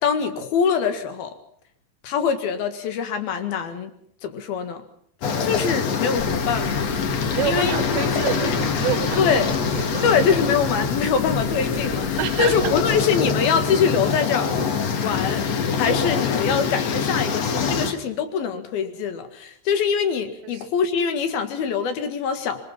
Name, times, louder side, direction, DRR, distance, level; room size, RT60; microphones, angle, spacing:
voice 1, 0.0-1.3 2.0-3.9 4.2-4.8 5.4-6.9 7.4-7.7 9.2-9.5 10.0-14.5 15.0-15.4 15.8-22.6, left 6 dB, 65° left, 8 dB, 3.5 m, -23 dB
sound 1, 5.2-17.9, left 6 dB, 50° left, 2.3 m, -24 dB
sound 2, 6.2-13.0, right 3 dB, 10° right, 3.2 m, -38 dB
voice 2, 7.3-10.1 12.2-12.7 20.4-20.7, right 12 dB, 85° right, 14 dB, 3.2 m, -28 dB
26.0 x 21.5 x 5.8 m, 0.65 s
omnidirectional pair, 4.9 m